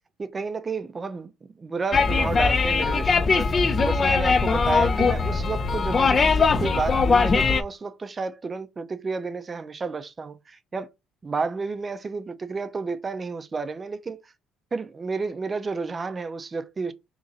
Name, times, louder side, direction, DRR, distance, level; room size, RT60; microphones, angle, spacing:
voice 1, 0.2-1.3 1.6-3.5 3.8-10.9 11.2-14.2 14.7-16.9, right 4 dB, 30° right, 0.4 m, -31 dB
sound 1, 1.9-7.6, left 4 dB, 40° left, 0.4 m, -21 dB
2.9 x 2.6 x 3.9 m
supercardioid pair, 75°, 0 cm